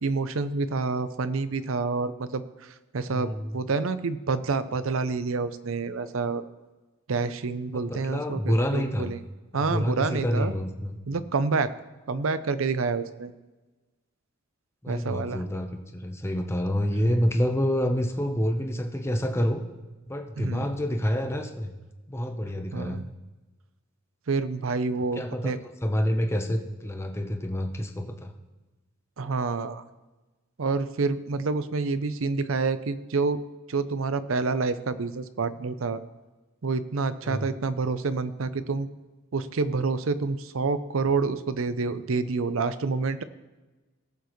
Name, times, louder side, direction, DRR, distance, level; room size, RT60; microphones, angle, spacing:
voice 1, 0.0-6.4 7.1-9.2 9.5-10.5 11.1-11.7 12.1-13.3 14.9-15.4 20.4-20.6 22.7-23.1 24.3-25.6 29.2-29.8 30.6-33.4 33.7-36.0 36.6-38.9 39.3-43.2, right 4 dB, 70° right, 13 dB, 0.6 m, -28 dB
voice 2, 3.1-3.6 7.7-9.1 9.5-11.0 14.8-19.6 20.1-21.7 22.1-23.0 25.1-25.5 25.8-28.3 37.2-37.5, equal, 15° left, 4 dB, 0.9 m, -28 dB
18.5 x 7.0 x 3.1 m, 1.2 s
head